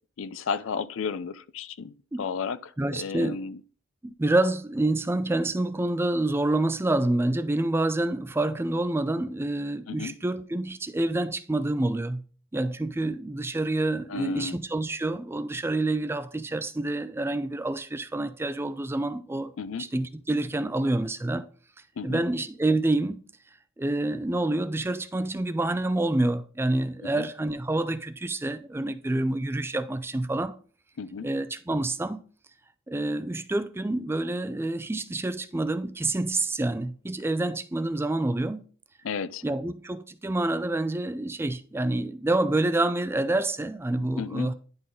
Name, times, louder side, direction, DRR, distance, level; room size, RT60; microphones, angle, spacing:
voice 1, 0.2-3.6 9.9-10.1 14.1-14.6 19.6-19.9 22.0-22.2 27.1-27.3 31.0-31.3 39.0-39.4 44.2-44.5, left 5 dB, 75° left, 0.4 m, -33 dB
voice 2, 2.8-3.4 4.0-12.2 12.5-19.5 19.8-21.5 22.0-23.2 23.8-30.5 31.2-32.2 32.9-38.6 39.4-44.5, right 2 dB, 10° right, 0.3 m, -27 dB
10.5 x 3.9 x 3.8 m
head